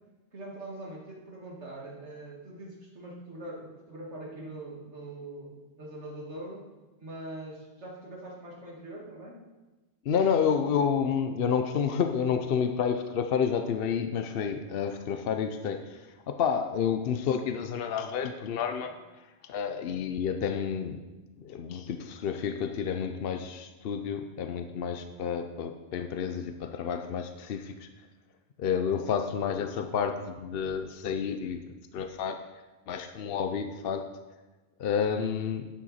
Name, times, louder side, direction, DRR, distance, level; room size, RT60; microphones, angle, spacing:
voice 1, 0.3-6.7 7.0-9.4, right 1 dB, 80° right, -2 dB, 2.3 m, -42 dB
voice 2, 10.0-19.0 19.4-21.0 21.4-27.9 28.6-31.6 31.9-32.4 32.9-34.1 34.8-35.7, left 7 dB, 60° left, 7 dB, 0.8 m, -30 dB
11.5 x 7.5 x 4.2 m, 1.2 s
omnidirectional pair, 1.2 m